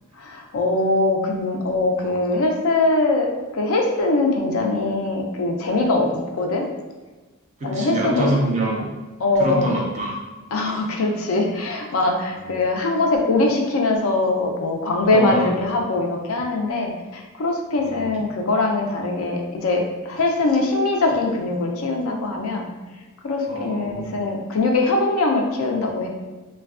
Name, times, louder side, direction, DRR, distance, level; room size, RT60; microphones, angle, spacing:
voice 1, 0.2-6.6 7.6-8.3 9.2-9.7 10.5-22.7 23.2-26.1, left 2 dB, 70° left, 1 dB, 0.4 m, -22 dB
voice 2, 7.6-8.9 9.4-10.2 10.6-10.8 12.4-12.5 15.1-15.5 17.8-18.1 23.5-24.2, equal, 35° right, -1 dB, 0.5 m, -25 dB
3.2 x 2.2 x 2.4 m, 1.2 s
head